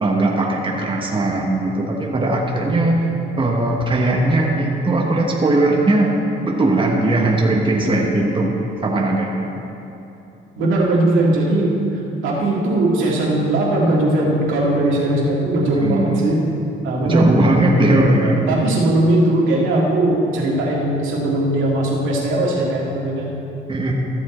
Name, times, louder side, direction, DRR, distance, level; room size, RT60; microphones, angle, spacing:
voice 1, 0.0-3.1 3.3-6.1 6.4-8.5 8.8-9.5 15.7-16.2 17.0-18.5 23.7-23.9, right 2 dB, 25° right, -1 dB, 1.3 m, -18 dB
voice 2, 10.6-11.8 12.2-16.4 16.8-17.2 18.2-23.4, right 1 dB, 80° right, -4 dB, 2.2 m, -19 dB
14.0 x 7.2 x 4.4 m, 2.9 s
cardioid pair, 90°, 20 cm